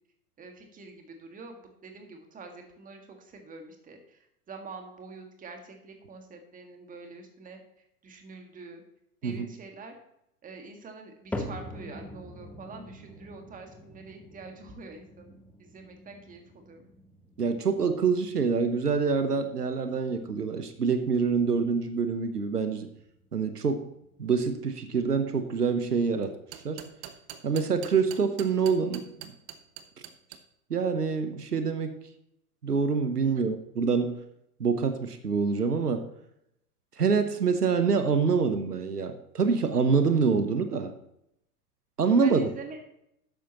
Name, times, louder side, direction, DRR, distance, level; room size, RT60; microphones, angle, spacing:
voice 1, 0.4-7.6 8.0-8.8 9.2-10.0 10.4-16.9 33.3-33.4 42.2-42.8, right 3 dB, 15° right, 4 dB, 1.8 m, -46 dB
sound 1, 11.3-27.6 28.0-28.5 29.1-29.2 30.0-30.1, left 1 dB, 5° left, 0.8 m, -46 dB
voice 2, 17.4-22.9 23.3-23.9 24.2-26.4 26.6-26.9 27.4-29.3 30.7-32.0 32.6-34.2 34.6-36.1 37.0-40.9 42.0-42.5, right 5 dB, 80° right, 9 dB, 1.1 m, -26 dB
sound 2, 26.2-30.4, right 11 dB, 35° right, 1.0 m, -43 dB
12.5 x 9.1 x 3.0 m, 0.78 s
figure-of-eight pair, 95°, 46 cm